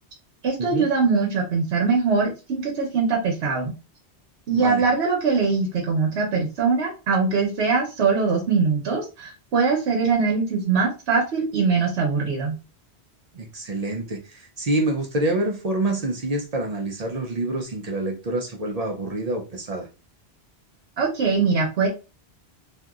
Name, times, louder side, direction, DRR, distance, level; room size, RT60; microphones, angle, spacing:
voice 1, 0.4-3.7 4.5-12.5 21.0-21.9, right 4 dB, 80° right, -1 dB, 1.0 m, -22 dB
voice 2, 4.5-4.8 13.3-19.9, right 2 dB, 50° right, 2 dB, 0.5 m, -27 dB
2.8 x 2.5 x 2.3 m, 0.30 s
omnidirectional pair, 1.1 m